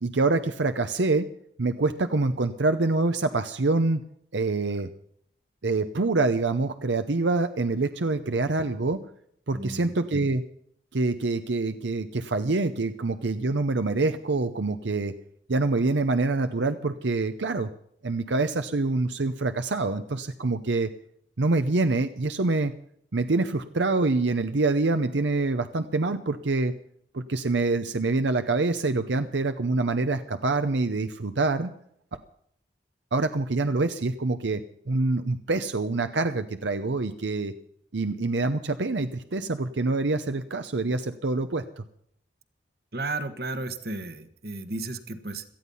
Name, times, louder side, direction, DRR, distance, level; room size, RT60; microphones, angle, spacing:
voice 1, 0.0-1.2 1.6-4.0 4.3-4.9 5.6-9.0 9.5-10.4 10.9-15.1 15.5-17.7 18.0-20.9 21.4-22.7 23.1-26.7 27.1-31.7 33.1-34.6 34.9-37.5 37.9-41.8, right 3 dB, 85° right, 9 dB, 0.8 m, -25 dB
voice 2, 9.5-10.1 42.9-45.4, right 2 dB, 55° right, 10 dB, 1.4 m, -34 dB
18.0 x 13.5 x 5.6 m, 0.69 s
head